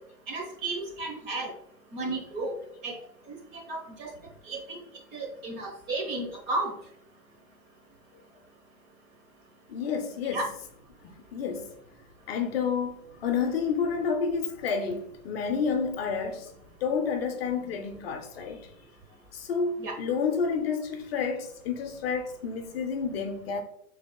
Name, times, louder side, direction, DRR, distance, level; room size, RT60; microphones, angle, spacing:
voice 1, 0.3-1.5 1.9-2.6 2.8-3.0 3.5-4.1 4.4-4.8 5.1-6.8 10.2-10.4 19.8-19.9, right 2 dB, 25° right, 0.9 m, -33 dB
voice 2, 9.7-10.4 11.0-11.7 12.3-16.5 16.8-18.7 19.3-23.6, left 6 dB, 45° left, 0.7 m, -30 dB
6.2 x 3.4 x 2.2 m
hypercardioid pair, 130°, 44 cm